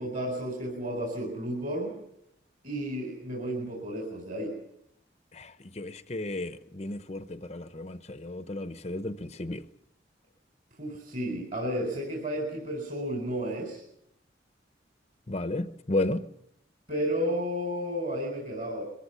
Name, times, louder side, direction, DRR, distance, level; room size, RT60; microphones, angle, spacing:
voice 1, 0.0-1.9 2.6-4.5 10.8-13.8 16.9-18.8, equal, 45° right, 4.2 m, -32 dB
voice 2, 5.3-9.6 15.3-16.3, left 2 dB, 35° left, 0.7 m, -33 dB
22.5 x 14.5 x 9.9 m
head